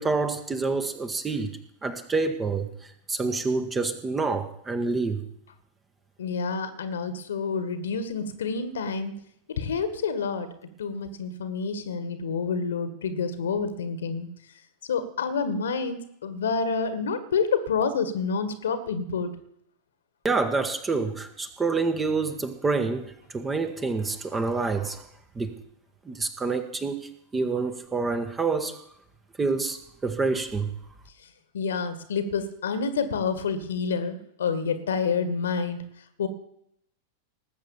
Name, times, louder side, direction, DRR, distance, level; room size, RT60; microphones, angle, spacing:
voice 1, 0.0-2.7 3.1-5.2 20.2-25.0 25.3-25.5 26.1-28.7 29.4-30.7, right 4 dB, 15° right, 8 dB, 1.6 m, -27 dB
voice 2, 6.2-9.1 9.5-10.5 10.8-14.3 14.9-19.3 31.5-35.8 36.2-36.3, left 5 dB, 65° left, 11 dB, 1.7 m, -28 dB
19.0 x 7.9 x 7.2 m, 0.72 s
figure-of-eight pair, 90°, 0 cm